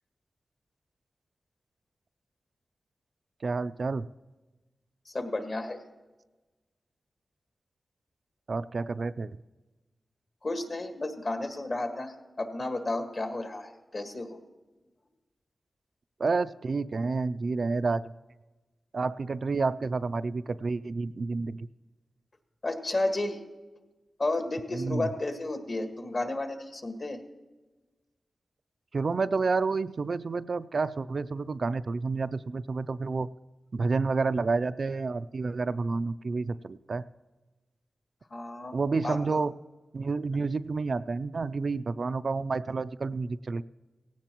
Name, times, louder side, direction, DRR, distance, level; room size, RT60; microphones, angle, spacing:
voice 1, 3.4-4.1 8.5-9.3 16.2-18.1 18.9-21.7 24.7-25.1 28.9-33.3 33.7-37.0 38.7-39.5 39.9-43.6, right 4 dB, 55° right, 12 dB, 0.3 m, -29 dB
voice 2, 5.1-5.8 10.4-14.4 22.6-23.4 24.2-27.2 38.3-38.7 39.0-39.4, left 2 dB, 50° left, 5 dB, 1.6 m, -32 dB
17.5 x 16.5 x 3.0 m, 1.2 s
wide cardioid pair, 90°, 0 cm